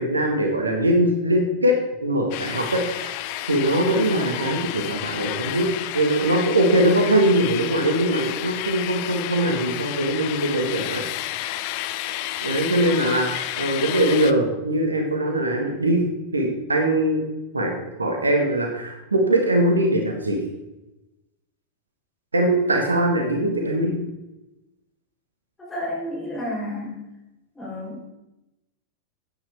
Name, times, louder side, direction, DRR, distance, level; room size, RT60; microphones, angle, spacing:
voice 1, 0.0-3.1 3.5-11.0 12.4-16.0 16.3-17.2 17.5-17.7 18.0-20.4 22.3-24.0, right 1 dB, 80° right, 2 dB, 1.7 m, -21 dB
sound 1, 2.3-14.3, left 14 dB, 45° left, 0.5 m, -31 dB
voice 2, 25.7-27.0 27.5-28.0, left 1 dB, 15° left, -5 dB, 4.3 m, -31 dB
11.5 x 9.2 x 3.6 m, 0.97 s
figure-of-eight pair, 90°, 0 cm